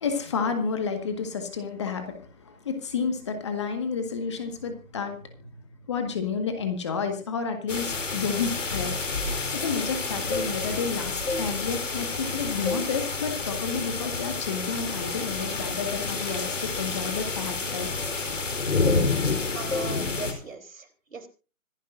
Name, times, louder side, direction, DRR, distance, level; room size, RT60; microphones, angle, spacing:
voice 1, 0.0-5.5 5.9-8.9 9.5-17.9 18.3-18.4, left 5 dB, 20° left, 6 dB, 1.7 m, -30 dB
sound 1, 7.7-20.3, left 4 dB, 60° left, 4.1 m, -29 dB
sound 2, 10.1-10.9 11.2-12.3 12.7-13.0 13.4-13.6 14.2-14.4 14.7-18.6 18.8-19.4 19.7-20.0 20.3-20.5, left 2 dB, 90° left, 2.0 m, -35 dB
voice 2, 19.5-21.3, right 3 dB, 65° right, 8 dB, 4.0 m, -39 dB
25.5 x 10.5 x 2.6 m, 0.33 s
figure-of-eight pair, 165°, 42 cm